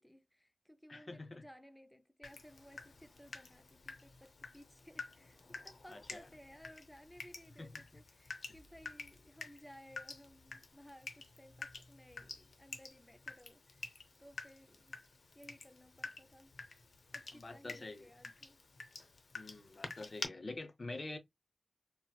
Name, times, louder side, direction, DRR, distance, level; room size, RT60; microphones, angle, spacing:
voice 1, 0.0-13.9 14.2-15.0 15.3-16.5 17.1-18.6 20.2-20.4, equal, 10° left, 0.4 m, -59 dB
voice 2, 0.9-1.4 5.9-6.3 7.6-8.0 17.3-18.1 19.3-21.2, left 2 dB, 45° left, 0.7 m, -47 dB
Water tap faucet / Drip, 2.2-20.3, left 3 dB, 80° left, 0.7 m, -50 dB
4.2 x 2.0 x 2.3 m
wide cardioid pair, 105°, 0 cm